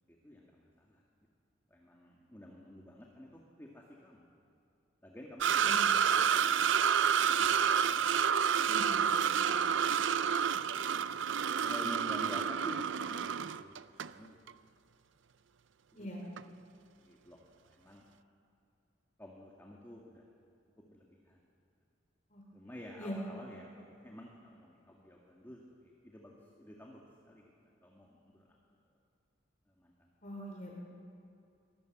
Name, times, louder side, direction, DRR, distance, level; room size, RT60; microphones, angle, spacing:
voice 1, 0.1-1.0 1.7-4.3 5.0-7.6 8.5-8.6 8.9-10.5 11.6-14.4 15.9-16.6 17.0-18.0 19.2-20.3 20.8-21.4 22.5-27.5 27.8-28.6 29.7-30.1, left 1 dB, 10° left, -1 dB, 2.1 m, -51 dB
sound 1, 5.4-14.1 14.5-14.6 16.4-16.5, right 7 dB, 75° right, 0.5 m, -29 dB
voice 2, 8.7-9.6 15.9-16.2 22.3-22.4 23.0-23.2 30.2-30.7, equal, 40° left, -1 dB, 3.4 m, -43 dB
24.0 x 19.5 x 8.0 m, 2.6 s
head